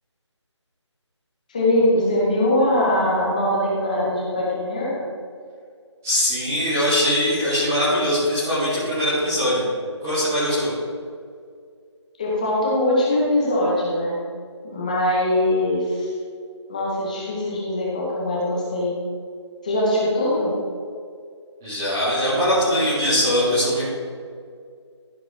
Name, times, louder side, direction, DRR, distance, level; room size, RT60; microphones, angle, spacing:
voice 1, 1.5-5.1 12.2-14.2 14.6-16.1 16.7-19.0 19.6-20.5, left 1 dB, 15° left, -6 dB, 1.8 m, -22 dB
voice 2, 6.0-9.6 10.0-10.7 21.6-23.8, equal, 5° right, -13 dB, 0.8 m, -21 dB
15.5 x 5.9 x 3.8 m, 2.2 s
figure-of-eight pair, 175°, 15 cm